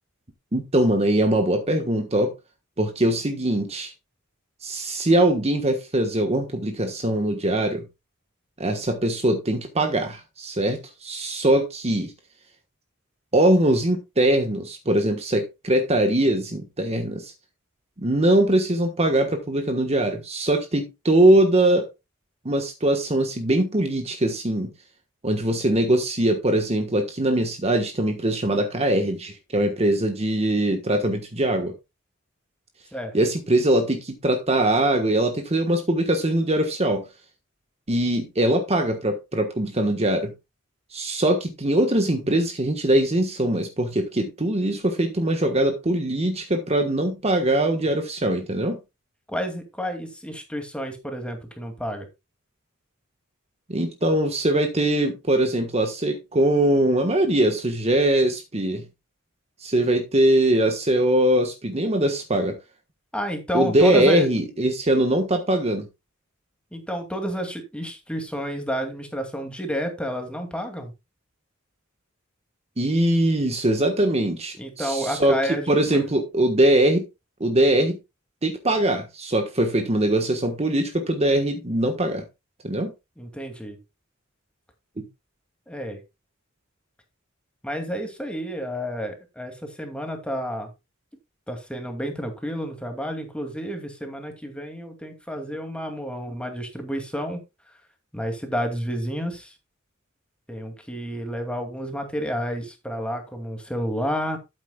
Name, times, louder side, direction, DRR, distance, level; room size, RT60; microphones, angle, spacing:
voice 1, 0.5-2.3 2.8-3.9 4.6-7.8 8.6-12.1 13.3-17.3 18.0-21.9 22.4-24.7 25.2-31.7 33.1-37.0 37.9-40.3 40.9-48.8 53.7-58.8 59.6-62.6 63.5-65.9 72.8-75.4 75.7-77.1 77.4-78.0 78.4-82.3 82.6-82.9 85.0-85.1, right 1 dB, 30° right, 1.3 m, -22 dB
voice 2, 49.3-52.1 63.1-64.3 66.7-70.9 74.6-76.1 83.2-83.8 85.7-86.0 87.6-90.7 91.5-97.4 98.1-99.5 100.5-104.4, equal, 5° left, 2.4 m, -30 dB
12.5 x 8.7 x 2.3 m
head